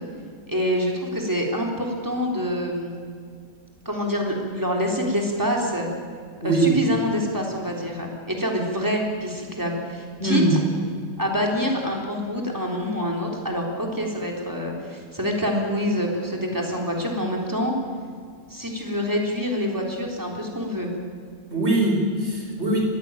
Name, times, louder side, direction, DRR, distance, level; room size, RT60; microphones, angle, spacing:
voice 1, 0.5-2.9 3.9-5.9 6.4-10.4 11.2-17.7 18.5-20.9, equal, 10° right, 0 dB, 3.6 m, -26 dB
voice 2, 6.4-6.8 10.2-10.5 21.5-22.8, right 2 dB, 40° right, 0 dB, 5.1 m, -22 dB
21.5 x 15.5 x 9.1 m, 2.1 s
omnidirectional pair, 1.6 m